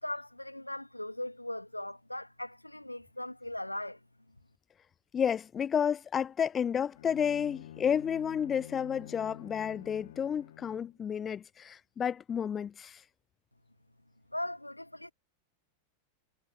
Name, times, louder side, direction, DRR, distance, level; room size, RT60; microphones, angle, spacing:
voice 1, 0.0-4.0 14.3-15.1, left 1 dB, 85° left, 2.2 m, -39 dB
voice 2, 5.1-13.0, left 8 dB, 25° left, 0.4 m, -31 dB
Bowed string instrument, 7.0-11.0, left 11 dB, 60° left, 1.6 m, -49 dB
figure-of-eight pair, 90°, 0 cm